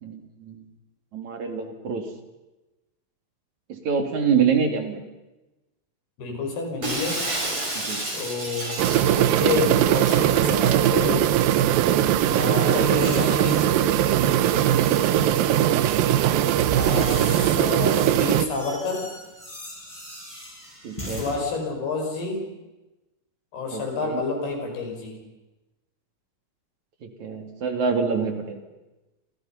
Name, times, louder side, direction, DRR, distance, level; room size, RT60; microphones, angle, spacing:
voice 1, 0.0-0.7 1.1-2.1 3.7-5.0 7.7-8.0 11.9-12.1 15.2-15.6 20.8-21.3 23.7-24.2 27.0-28.6, right 6 dB, 50° right, 5 dB, 3.6 m, -26 dB
voice 2, 6.2-7.2 8.1-8.8 9.2-11.3 12.3-13.8 16.8-19.1 21.1-22.4 23.5-25.2, left 3 dB, 90° left, 2 dB, 7.5 m, -29 dB
Shatter, 6.8-10.3, right 1 dB, 35° right, 7.6 m, -30 dB
sound 1, 8.8-18.5, right 11 dB, 75° right, 2.6 m, -20 dB
sound 2, 11.9-13.8 14.3-15.5 16.3-21.4, equal, 5° left, 6.5 m, -41 dB
29.0 x 28.0 x 5.8 m, 1.0 s
omnidirectional pair, 4.4 m